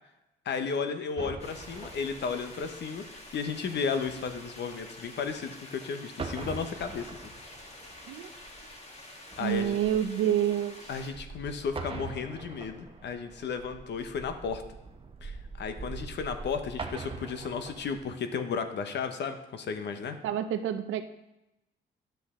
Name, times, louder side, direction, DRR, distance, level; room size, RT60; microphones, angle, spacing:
voice 1, 0.4-7.3 9.4-9.8 10.9-14.6 15.2-20.2, left 5 dB, 60° left, 8 dB, 1.0 m, -34 dB
sound 1, 1.2-5.8 6.1-18.0, right 4 dB, 25° right, 1.0 m, -44 dB
sound 2, 1.4-11.1, left 1 dB, 30° left, 1.9 m, -48 dB
voice 2, 9.4-10.9 20.2-21.0, right 10 dB, 80° right, 9 dB, 0.7 m, -28 dB
10.0 x 7.9 x 3.7 m, 0.92 s
cardioid pair, 90°, 20 cm